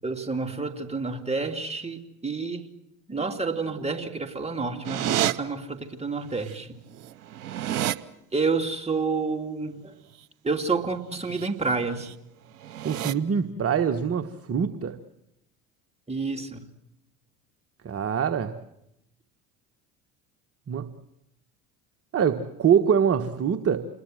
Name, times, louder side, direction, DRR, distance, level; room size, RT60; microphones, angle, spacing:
voice 1, 0.0-2.7 3.1-6.8 8.3-9.9 10.4-12.1 16.1-16.6, right 4 dB, 15° right, 5 dB, 2.7 m, -29 dB
sound 1, 4.8-5.3 6.5-6.6 6.9-8.0 11.1-11.5 11.8-12.1 12.6-13.1, right 12 dB, 85° right, 0.8 m, -29 dB
voice 2, 12.8-15.0 17.8-18.5 20.7-20.9 22.1-23.9, right 7 dB, 30° right, 9 dB, 1.3 m, -24 dB
27.5 x 21.0 x 7.7 m, 0.83 s
hypercardioid pair, 70°, 44 cm